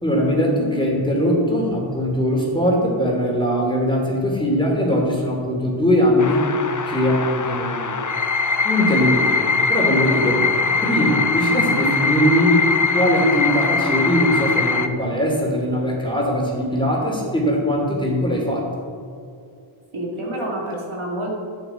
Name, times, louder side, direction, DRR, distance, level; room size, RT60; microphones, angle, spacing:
voice 1, 0.0-6.4 6.8-8.1 8.6-9.4 9.7-10.4 10.8-12.6 12.9-18.7, equal, 10° left, -2 dB, 2.8 m, -20 dB
sound 1, 6.2-14.9, left 4 dB, 40° left, 0.7 m, -21 dB
voice 2, 19.9-21.3, right 1 dB, 85° right, -4 dB, 2.8 m, -28 dB
11.0 x 9.3 x 4.4 m, 2.5 s
wide cardioid pair, 70°, 49 cm